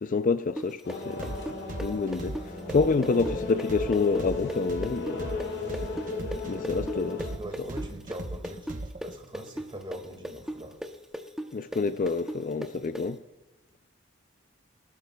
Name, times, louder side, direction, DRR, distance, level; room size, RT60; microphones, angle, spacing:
voice 1, 0.0-1.4 1.8-5.3 6.5-7.3 11.5-13.2, left 4 dB, 40° left, 0.4 m, -28 dB
sound 1, 0.6-8.2 8.4-13.0, equal, 5° right, 0.7 m, -36 dB
sound 2, 0.8-7.3, left 3 dB, 60° left, 2.0 m, -35 dB
sound 3, 1.2-9.1, right 1 dB, 40° right, 0.9 m, -38 dB
voice 2, 6.5-10.8, right 1 dB, 25° right, 1.9 m, -43 dB
19.5 x 12.0 x 2.3 m
head